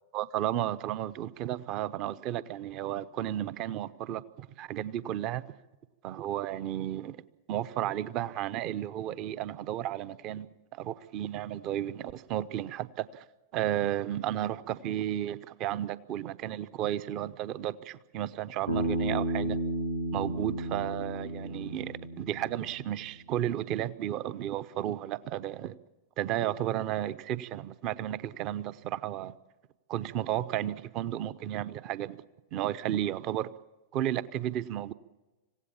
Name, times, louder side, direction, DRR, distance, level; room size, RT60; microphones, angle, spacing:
voice 1, 0.1-5.4 6.0-7.2 7.5-13.2 13.5-19.6 20.1-25.8 26.2-29.3 29.9-32.2 32.5-33.5 33.9-34.9, right 12 dB, 40° right, 17 dB, 0.8 m, -33 dB
Bass guitar, 18.7-22.9, right 1 dB, 85° right, 1.9 m, -33 dB
26.5 x 16.5 x 7.2 m, 1.2 s
figure-of-eight pair, 90°, 0 cm